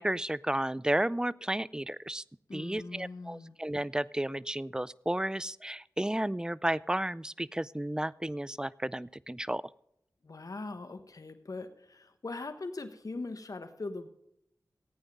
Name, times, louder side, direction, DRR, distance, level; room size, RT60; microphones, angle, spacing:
voice 1, 0.0-2.2 2.5-9.6, right 1 dB, 10° right, 20 dB, 0.4 m, -32 dB
voice 2, 2.5-3.5 10.2-14.1, left 3 dB, 60° left, 7 dB, 1.2 m, -41 dB
15.0 x 9.0 x 5.3 m, 0.76 s
wide cardioid pair, 50°, 7 cm